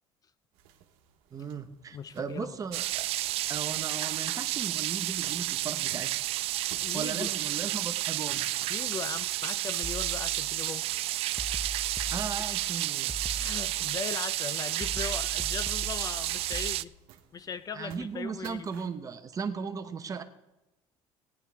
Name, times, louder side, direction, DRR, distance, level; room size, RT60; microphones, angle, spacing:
sound 1, 0.5-19.0, right 10 dB, 90° right, 1.2 m, -57 dB
voice 1, 1.3-3.0 3.5-6.2 6.9-8.5 12.1-13.1 17.7-20.2, right 6 dB, 30° right, 8 dB, 1.0 m, -37 dB
voice 2, 1.9-2.5 6.8-7.3 8.7-10.9 13.4-16.9 17.3-18.7, left 6 dB, 35° left, 13 dB, 0.5 m, -39 dB
sound 2, 2.7-16.8, right 16 dB, 60° right, 0.4 m, -31 dB
sound 3, 9.8-10.7 11.4-12.7 13.1-14.2 14.8-16.7, left 1 dB, ahead, 0.7 m, -40 dB
17.0 x 10.0 x 3.5 m, 0.97 s
cardioid pair, 110°, 11 cm